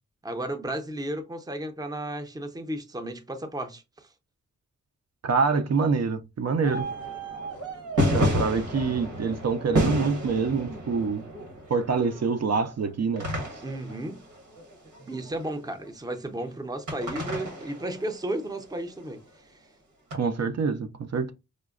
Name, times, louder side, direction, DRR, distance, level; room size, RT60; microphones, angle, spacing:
voice 1, 0.2-4.1 13.6-14.2 15.0-19.6, right 1 dB, 15° right, 0.6 m, -34 dB
voice 2, 5.2-6.9 8.1-11.2 11.7-13.3 20.1-21.3, right 5 dB, 60° right, 0.5 m, -26 dB
sound 1, 6.6-15.9 16.9-18.8 20.1-20.2, equal, 85° right, 1.4 m, -31 dB
5.0 x 2.2 x 2.4 m
wide cardioid pair, 105°, 30 cm